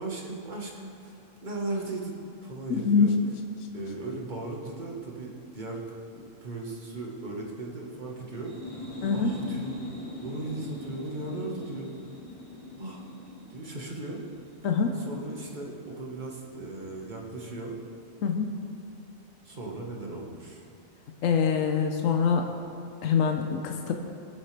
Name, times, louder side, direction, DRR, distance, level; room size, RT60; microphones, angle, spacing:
voice 1, 0.0-3.1 3.7-8.8 9.1-9.8 10.2-11.9 12.8-13.0 13.5-14.2 14.9-17.8 19.4-20.6, right 2 dB, 35° right, -1 dB, 1.5 m, -37 dB
voice 2, 2.7-3.1 9.0-9.3 14.6-14.9 18.2-18.5 21.2-22.4 23.0-23.9, left 6 dB, 70° left, 4 dB, 1.1 m, -24 dB
sound 1, 8.3-15.8, equal, 25° left, 2.1 m, -42 dB
19.0 x 7.2 x 3.3 m, 2.6 s
omnidirectional pair, 1.4 m